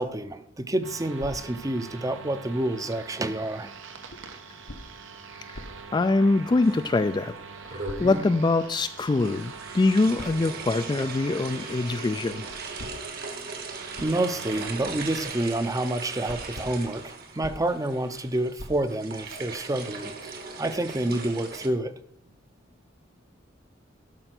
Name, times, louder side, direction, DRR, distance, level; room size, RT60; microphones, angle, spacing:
voice 1, 0.0-3.7 14.0-21.9, right 1 dB, 15° right, 11 dB, 0.6 m, -28 dB
sound 1, 0.8-14.7, right 5 dB, 80° right, 1.2 m, -44 dB
sound 2, 1.2-2.4 4.1-7.0 7.8-8.7 10.2-11.3 12.8-15.6 15.9-19.6, left 1 dB, 90° left, 1.3 m, -46 dB
voice 2, 5.9-7.3 7.7-12.5, left 3 dB, 25° left, 11 dB, 0.3 m, -24 dB
sound 3, 6.6-7.3 7.7-8.4 9.2-21.7, right 4 dB, 55° right, 1.4 m, -38 dB
12.0 x 5.5 x 6.0 m, 0.71 s
head